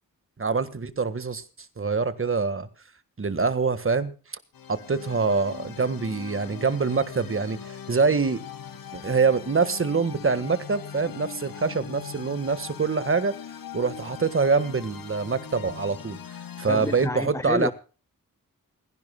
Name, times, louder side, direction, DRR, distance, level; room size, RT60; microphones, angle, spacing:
voice 1, 0.4-1.4 1.8-2.7 3.2-4.1 4.7-8.4 8.9-13.3 13.7-16.2 16.6-17.7, right 4 dB, 40° right, 1.7 m, -25 dB
sound 1, 4.5-17.1, left 8 dB, 85° left, 1.3 m, -41 dB
voice 2, 16.7-17.7, left 2 dB, 10° left, 0.6 m, -29 dB
28.5 x 10.5 x 2.3 m
cardioid pair, 65°, 34 cm